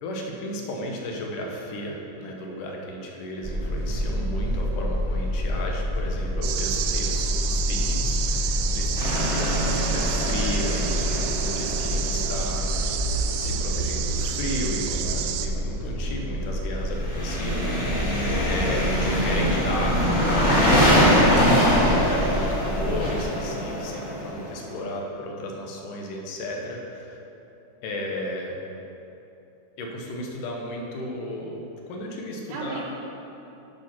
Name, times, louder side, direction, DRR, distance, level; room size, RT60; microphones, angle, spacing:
voice 1, 0.0-12.9 13.4-17.7 18.4-20.4 20.9-21.4 21.7-27.2 27.8-28.6 29.8-32.8, left 1 dB, 75° left, 0 dB, 2.5 m, -34 dB
sound 1, 3.4-23.2, equal, 20° right, 1.2 m, -28 dB
sound 2, 6.4-15.5, right 9 dB, 90° right, 2.3 m, -30 dB
voice 2, 8.9-9.3 18.4-18.9 32.5-32.8, right 4 dB, 70° right, -6 dB, 2.3 m, -38 dB
sound 3, 9.0-12.8 17.0-24.6, equal, 30° left, 1.4 m, -23 dB
9.8 x 5.6 x 5.9 m, 2.9 s
omnidirectional pair, 3.9 m